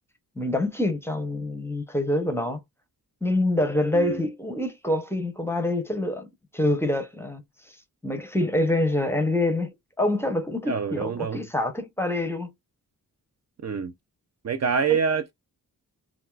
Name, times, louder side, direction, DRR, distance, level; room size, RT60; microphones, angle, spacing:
voice 1, 0.4-2.6 3.2-6.3 6.5-7.4 7.7-7.8 8.0-12.5 14.9-15.0, left 1 dB, 5° left, 0.6 m, -26 dB
voice 2, 10.7-11.4 13.6-13.9 14.4-15.3, right 6 dB, 45° right, 0.4 m, -26 dB
3.4 x 2.4 x 2.3 m
wide cardioid pair, 125°, 37 cm